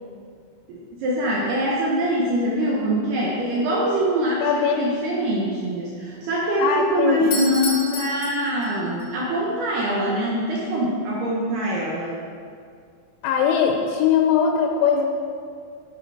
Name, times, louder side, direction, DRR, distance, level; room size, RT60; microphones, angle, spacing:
voice 1, 0.7-12.2, right 1 dB, 70° right, -4 dB, 2.6 m, -23 dB
voice 2, 4.4-4.8 6.6-7.3 13.2-15.1, left 7 dB, 85° left, 2 dB, 3.2 m, -20 dB
Doorbell, 7.2-9.1, left 3 dB, 60° left, 2.2 m, -31 dB
10.0 x 9.7 x 4.9 m, 2.2 s
omnidirectional pair, 5.8 m